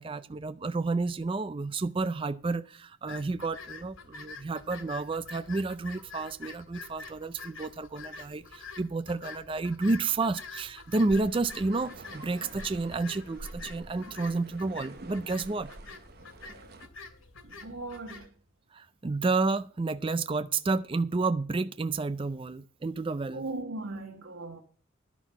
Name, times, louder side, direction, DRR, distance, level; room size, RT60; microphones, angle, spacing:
voice 1, 0.0-15.7 18.7-23.4, right 3 dB, 25° right, 0.4 m, -30 dB
sound 1, 3.1-18.3, left 4 dB, 85° left, 1.7 m, -47 dB
sound 2, 11.1-16.9, right 2 dB, 50° right, 0.9 m, -47 dB
voice 2, 17.4-18.3 23.3-24.6, right 2 dB, 85° right, 1.4 m, -38 dB
11.0 x 6.1 x 7.2 m
head